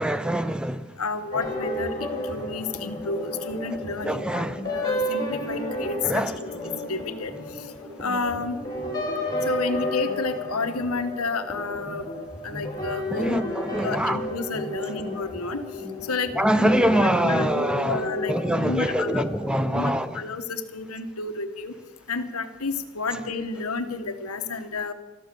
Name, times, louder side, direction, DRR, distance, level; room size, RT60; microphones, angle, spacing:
voice 1, 0.0-0.8 4.0-4.6 6.0-6.4 13.1-14.2 16.4-18.0 18.3-20.1, right 1 dB, 5° right, 0.5 m, -24 dB
voice 2, 1.0-1.9 2.2-6.5 6.9-7.7 8.0-8.6 9.4-12.0 12.4-13.4 13.8-15.6 16.0-19.2 19.6-21.7 22.1-24.9, left 3 dB, 90° left, 1.3 m, -31 dB
sound 1, 1.3-20.0, left 1 dB, 15° left, 3.3 m, -32 dB
13.5 x 12.5 x 7.6 m
head